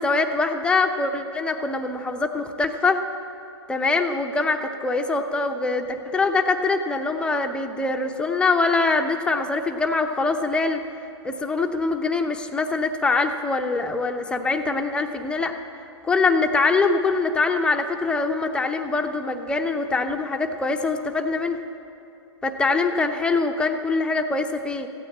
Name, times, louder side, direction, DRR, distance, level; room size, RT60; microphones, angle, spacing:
voice 1, 0.0-3.0 3.7-10.8 11.2-15.5 16.0-21.6 22.4-24.9, left 3 dB, 5° left, 5 dB, 0.7 m, -23 dB
15.0 x 9.1 x 8.5 m, 2.9 s
hypercardioid pair, 130°, 15 cm